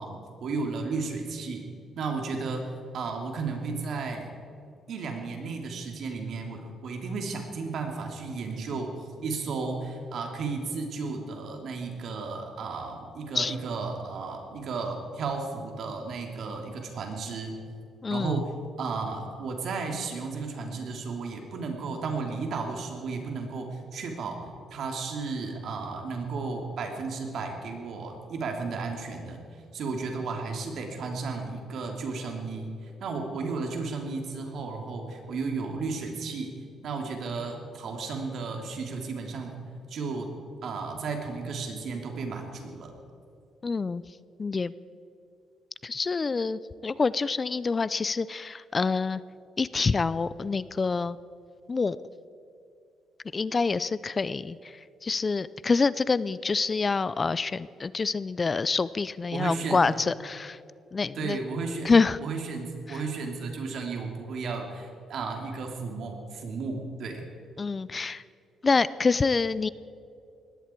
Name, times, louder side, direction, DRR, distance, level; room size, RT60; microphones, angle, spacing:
voice 1, 0.0-1.7 2.0-2.7 2.9-4.3 4.9-17.6 18.1-18.5 18.8-24.4 24.7-29.4 29.7-36.5 36.8-39.6 39.9-40.3 40.6-42.9 59.3-59.8 61.1-61.9 62.2-67.3, right 4 dB, 65° right, 2 dB, 3.0 m, -34 dB
voice 2, 18.0-18.4 43.6-44.0 44.4-44.7 45.8-49.2 49.6-51.2 51.7-52.0 53.3-54.6 55.0-60.6 60.9-61.4 61.8-62.2 62.9-63.0 67.6-68.2 68.6-69.7, left 4 dB, 30° left, 18 dB, 0.4 m, -26 dB
19.5 x 16.0 x 4.6 m, 2.5 s
cardioid pair, 90°, 0 cm